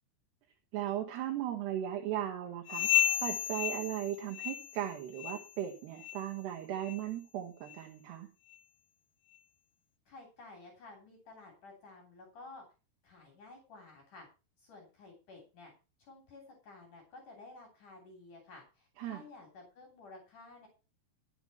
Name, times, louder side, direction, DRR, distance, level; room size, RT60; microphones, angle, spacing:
voice 1, 0.7-2.9 3.2-8.3 19.0-19.2, right 11 dB, 75° right, 1 dB, 3.5 m, -37 dB
sound 1, 2.7-4.9 5.2-5.5 6.0-6.2 6.8-7.0 7.7-7.8 8.5-8.6, left 11 dB, 70° left, 2.0 m, -32 dB
voice 2, 10.1-12.6 13.0-14.3 14.6-15.7 16.0-20.7, left 3 dB, 50° left, 2 dB, 4.4 m, -53 dB
13.0 x 8.1 x 5.5 m, 0.32 s
omnidirectional pair, 4.8 m